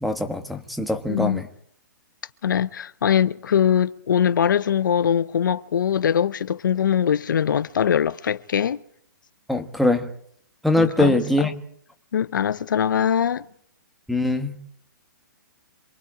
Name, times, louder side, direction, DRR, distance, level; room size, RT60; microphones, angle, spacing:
voice 1, 0.0-1.4 9.5-10.1 10.6-11.5 14.1-14.6, left 1 dB, ahead, 1.3 m, -22 dB
voice 2, 1.1-1.4 2.4-8.8 10.8-11.5 12.1-13.5, left 8 dB, 70° left, 0.8 m, -22 dB
27.5 x 22.5 x 4.9 m
hypercardioid pair, 155°, 11 cm